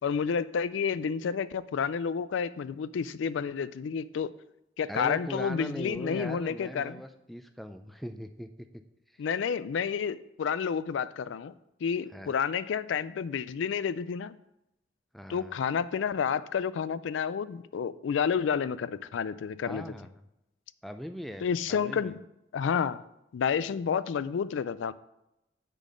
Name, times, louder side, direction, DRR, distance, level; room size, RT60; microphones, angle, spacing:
voice 1, 0.0-4.3 4.8-7.0 9.2-11.5 11.8-14.3 15.3-19.8 21.4-22.1 22.5-23.0 23.3-24.9, left 6 dB, 90° left, 16 dB, 0.3 m, -30 dB
voice 2, 4.9-8.8 9.1-9.2 12.1-12.3 15.1-15.6 19.7-20.2 20.8-22.1, equal, ahead, 8 dB, 0.4 m, -40 dB
6.6 x 4.2 x 6.2 m, 0.86 s
head